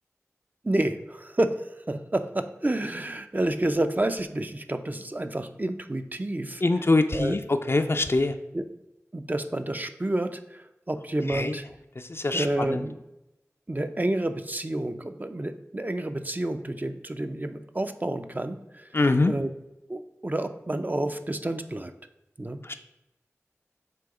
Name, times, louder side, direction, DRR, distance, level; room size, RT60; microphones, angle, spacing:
voice 1, 0.6-1.6 1.9-6.6 7.1-7.4 8.5-8.6 9.1-11.6 12.3-13.0 13.7-18.9 19.3-19.5 19.9-21.9 22.4-22.6, right 1 dB, 35° right, 8 dB, 0.5 m, -29 dB
voice 2, 6.6-7.4 7.7-8.3 11.3-11.5 12.1-12.4 18.9-19.3 22.7-22.8, left 2 dB, 50° left, 7 dB, 0.4 m, -23 dB
7.7 x 2.8 x 4.8 m, 0.92 s
wide cardioid pair, 50°, 5 cm